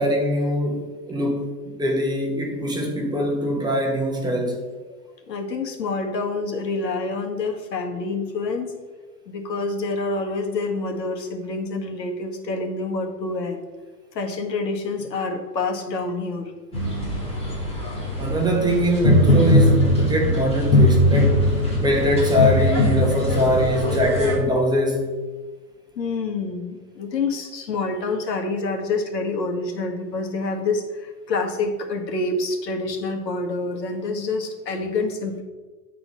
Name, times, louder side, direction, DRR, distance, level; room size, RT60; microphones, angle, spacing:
voice 1, 0.0-4.6 18.2-21.5 21.8-25.1, equal, 10° right, 1.1 m, -22 dB
voice 2, 5.3-8.7 9.3-13.6 14.1-16.5 26.0-35.4, left 3 dB, 85° left, 1.6 m, -27 dB
sound 1, 16.7-24.4, left 1 dB, 10° left, 2.2 m, -20 dB
9.4 x 4.3 x 5.5 m
hypercardioid pair, 135°, 48 cm